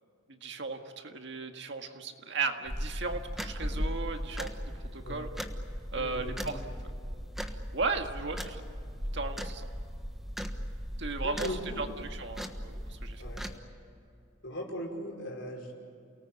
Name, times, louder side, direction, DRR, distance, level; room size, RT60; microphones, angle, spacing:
voice 1, 0.4-4.5 4.9-5.3 5.9-6.6 7.7-8.6 9.1-9.7 11.0-13.2, right 4 dB, 60° right, 5 dB, 1.9 m, -35 dB
sound 1, 2.7-13.6, equal, ahead, 1.3 m, -38 dB
voice 2, 5.9-6.7 11.2-11.8 13.2-13.4 14.4-15.8, equal, 65° left, 1 dB, 5.4 m, -39 dB
29.0 x 19.0 x 8.9 m, 2.5 s
head